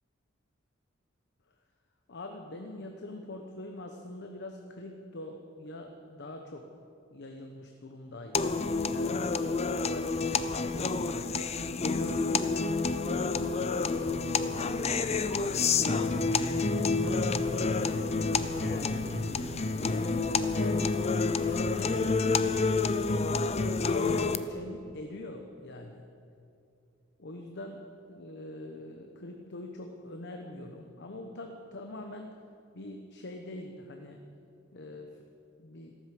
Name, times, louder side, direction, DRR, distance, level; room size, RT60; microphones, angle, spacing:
voice 1, 2.1-6.7 7.1-8.6 8.9-11.6 12.0-14.7 15.2-17.8 18.3-23.3 23.8-26.0 27.2-27.8 28.1-32.4 32.7-34.2 34.7-35.2 35.6-36.0, left 1 dB, 60° left, 4 dB, 1.0 m, -43 dB
sound 1, 8.3-24.4, left 4 dB, 35° left, 0.6 m, -29 dB
sound 2, 11.1-22.6, right 1 dB, 75° right, 3.2 m, -44 dB
14.0 x 13.0 x 7.7 m, 2.5 s
head